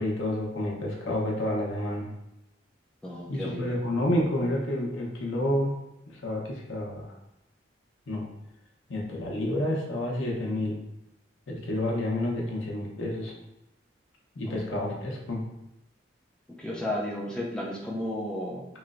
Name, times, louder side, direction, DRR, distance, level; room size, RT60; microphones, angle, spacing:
voice 1, 0.0-2.1 3.3-5.7 6.1-7.1 8.1-8.3 8.9-10.8 11.5-13.3 14.3-15.4, left 1 dB, 85° left, -2 dB, 0.8 m, -29 dB
voice 2, 3.0-3.8 14.4-14.8 16.5-18.7, left 1 dB, 5° left, -4 dB, 0.4 m, -34 dB
3.1 x 3.0 x 2.4 m, 0.86 s
head